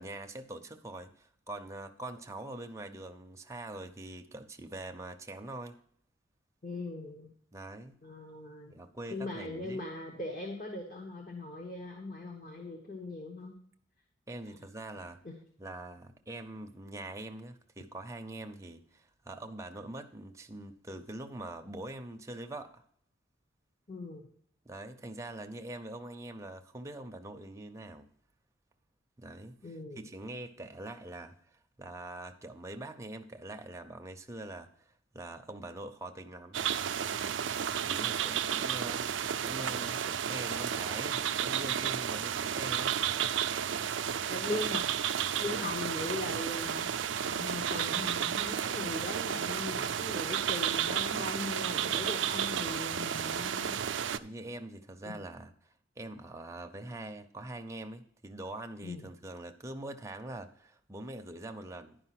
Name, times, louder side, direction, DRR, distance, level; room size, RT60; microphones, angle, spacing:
voice 1, 0.0-5.8 7.5-7.9 8.7-9.8 14.3-15.2 15.6-22.8 24.6-28.1 29.2-36.7 37.9-39.1 39.4-43.0 54.1-62.0, right 1 dB, 15° right, 0.6 m, -44 dB
voice 2, 6.6-7.3 8.0-8.7 9.1-13.6 15.0-15.4 23.9-24.3 29.6-30.0 44.3-44.8 45.4-46.9 47.2-53.8 55.0-55.1 58.8-59.1, left 2 dB, 45° left, 1.2 m, -39 dB
sound 1, 36.5-54.2, right 8 dB, 65° right, 0.4 m, -32 dB
11.0 x 5.2 x 5.8 m
head